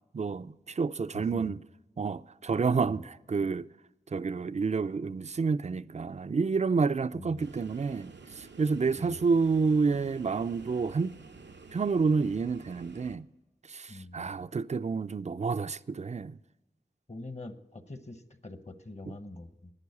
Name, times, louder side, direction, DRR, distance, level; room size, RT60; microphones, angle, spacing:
voice 1, 0.1-1.6 2.0-3.7 4.1-11.2 11.7-13.3 13.7-16.4, right 4 dB, 40° right, 0.4 m, -29 dB
voice 2, 1.1-1.6 2.9-3.0 7.1-7.5 9.0-9.2 13.9-14.3 17.1-19.7, left 2 dB, 40° left, 0.9 m, -44 dB
sound 1, 7.4-13.2, right 4 dB, 90° right, 0.7 m, -50 dB
11.0 x 9.9 x 8.3 m
wide cardioid pair, 60°, 18 cm